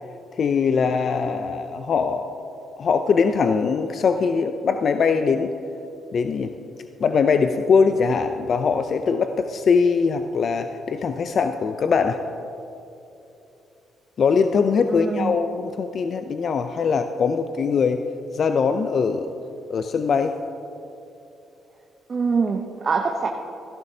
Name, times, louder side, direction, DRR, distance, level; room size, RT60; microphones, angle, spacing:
voice 1, 0.4-2.3 2.8-5.5 6.1-6.5 7.0-12.2 14.2-18.0 18.3-19.3 19.7-20.3, left 5 dB, 55° left, 8 dB, 0.4 m, -21 dB
voice 2, 14.9-15.3 22.1-23.3, right 5 dB, 40° right, 2 dB, 0.8 m, -24 dB
15.0 x 12.0 x 2.8 m, 2.8 s
cardioid pair, 90°, 0 cm